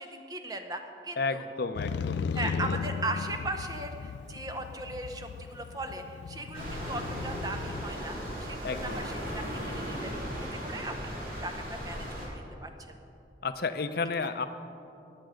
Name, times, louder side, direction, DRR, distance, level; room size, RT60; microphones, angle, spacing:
voice 1, 0.0-1.4 2.3-10.2 10.5-11.1 11.4-13.0 14.2-14.3, right 2 dB, 20° right, 5 dB, 0.9 m, -38 dB
voice 2, 1.2-2.8 8.6-9.0 13.4-14.5, left 4 dB, 60° left, 10 dB, 0.7 m, -32 dB
Motorcycle, 1.8-7.8, left 6 dB, 80° left, 0.3 m, -36 dB
sound 1, 6.5-12.3, equal, 55° right, 3.4 m, -37 dB
17.5 x 10.5 x 5.1 m, 2.7 s
head